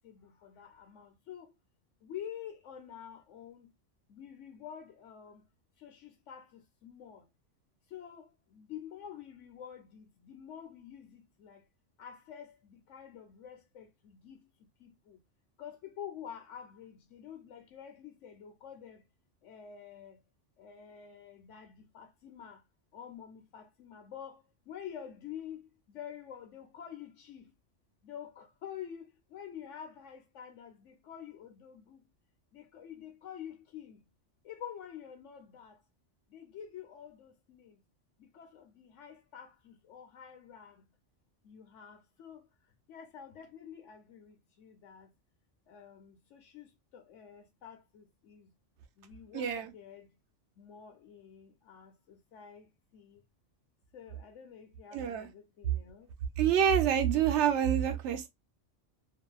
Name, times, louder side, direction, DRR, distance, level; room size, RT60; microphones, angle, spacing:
voice 1, 0.0-1.5 2.0-3.7 4.1-5.5 5.8-7.3 7.9-11.6 12.0-15.2 15.6-19.0 19.4-20.2 20.6-22.6 22.9-27.5 28.0-32.0 32.5-34.0 34.4-35.8 36.3-37.8 38.2-40.9 41.4-42.5 42.9-45.1 45.7-48.5 49.0-50.1 50.6-53.2 53.9-56.1, left 9 dB, 90° left, 1.2 m, -48 dB
voice 2, 49.3-49.7 54.9-55.3 56.4-58.3, right 9 dB, 75° right, 0.9 m, -27 dB
2.7 x 2.6 x 2.3 m
omnidirectional pair, 1.2 m